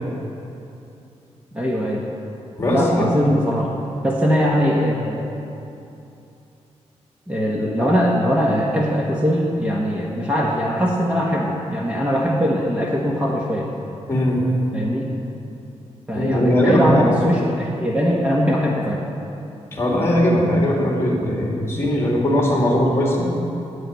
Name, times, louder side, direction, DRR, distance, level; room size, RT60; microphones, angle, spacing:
voice 1, 1.5-2.0 2.7-3.7 4.0-5.2 7.3-13.7 14.7-15.1 16.1-19.0, equal, 10° right, -3 dB, 1.2 m, -21 dB
voice 2, 14.1-14.4 16.1-17.1 19.7-23.2, left 1 dB, 20° left, -2 dB, 2.6 m, -19 dB
10.5 x 8.4 x 9.4 m, 2.8 s
wide cardioid pair, 155°, 12 cm